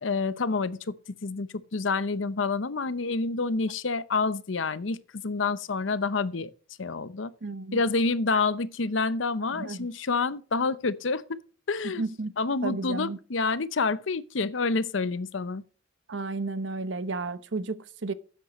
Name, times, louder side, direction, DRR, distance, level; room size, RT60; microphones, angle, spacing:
voice 1, 0.0-0.9 1.2-6.5 6.8-7.3 7.7-11.4 11.7-12.0 12.4-15.6, left 4 dB, 85° left, 0.8 m, -28 dB
voice 2, 7.4-7.8 8.3-8.4 9.5-9.9 12.0-12.3 12.6-13.2 16.1-18.1, right 3 dB, 75° right, 0.9 m, -32 dB
13.0 x 9.1 x 3.1 m
head